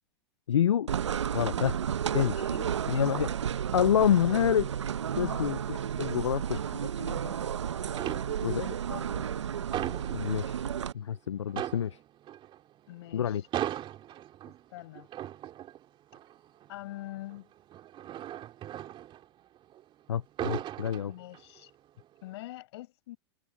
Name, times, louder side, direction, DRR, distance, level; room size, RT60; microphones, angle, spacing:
voice 1, 0.5-0.9 1.3-1.8 2.1-2.4 2.9-3.3 3.7-4.7 5.2-6.6 8.4-8.6 10.1-10.6 10.9-12.0 13.1-13.4 20.1-21.1, left 9 dB, 85° left, 0.7 m, -27 dB
sound 1, 0.9-10.9, right 9 dB, 90° right, 0.9 m, -32 dB
voice 2, 2.3-2.8 5.1-5.5 6.5-7.6 8.1-9.5 12.9-13.4 14.4-15.1 16.7-17.5 21.1-21.7 22.2-23.2, left 17 dB, 65° left, 5.8 m, -45 dB
sound 2, 6.9-7.5 7.9-8.7 9.1-10.8 11.1-11.2 11.5-19.8 20.1-21.6 22.0-22.3, right 12 dB, 35° right, 2.8 m, -39 dB
hypercardioid pair, 110°, 15 cm